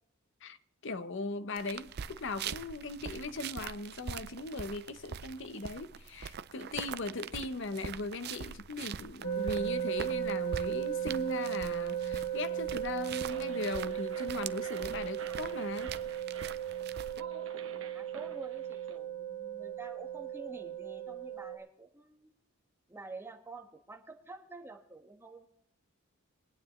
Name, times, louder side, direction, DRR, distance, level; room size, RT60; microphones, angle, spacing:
voice 1, 0.8-16.0, left 3 dB, 60° left, 0.8 m, -39 dB
sound 1, 1.5-17.2, right 7 dB, 50° right, 0.4 m, -43 dB
sound 2, 9.2-21.6, right 10 dB, 80° left, 2.1 m, -36 dB
sound 3, 12.8-19.0, right 5 dB, 70° right, 1.2 m, -50 dB
voice 2, 17.5-22.3 22.9-25.5, right 3 dB, 10° right, 1.4 m, -48 dB
22.5 x 9.5 x 3.1 m
head